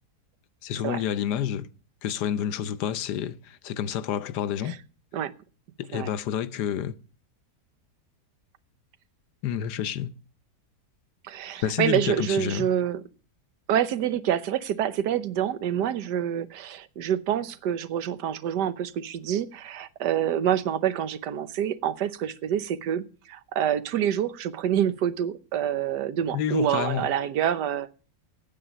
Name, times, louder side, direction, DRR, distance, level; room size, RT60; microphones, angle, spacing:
voice 1, 0.6-1.7 2.0-4.8 5.8-7.0 9.4-10.1 11.6-12.7 26.3-27.1, left 9 dB, 80° left, 1.3 m, -29 dB
voice 2, 11.2-13.0 13.7-27.9, right 10 dB, 85° right, 1.4 m, -27 dB
9.2 x 8.6 x 8.7 m
omnidirectional pair, 1.8 m